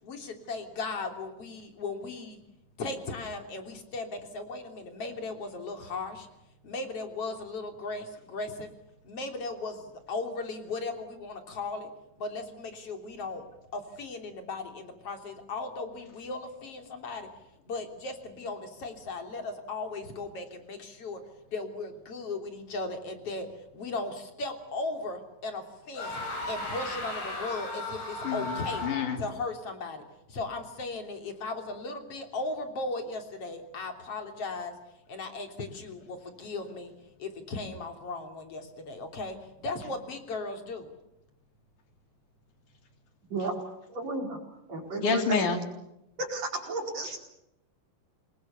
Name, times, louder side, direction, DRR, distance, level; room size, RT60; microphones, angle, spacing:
voice 1, 0.0-2.4 2.8-6.3 6.6-8.7 9.0-11.9 12.2-13.5 13.7-17.3 17.7-21.2 21.5-26.2 26.5-28.9 29.2-30.0 30.3-34.7 35.1-36.9 37.2-40.9, left 3 dB, 45° left, 5 dB, 4.1 m, -37 dB
sound 1, 26.0-29.3, left 2 dB, 90° left, 7.2 m, -36 dB
voice 2, 28.2-29.2 45.0-45.6, left 5 dB, 65° left, 6 dB, 4.2 m, -28 dB
voice 3, 43.9-44.4 44.7-45.5 46.2-47.2, right 2 dB, 50° right, 2 dB, 5.9 m, -33 dB
28.0 x 22.0 x 7.0 m, 0.86 s
omnidirectional pair, 3.9 m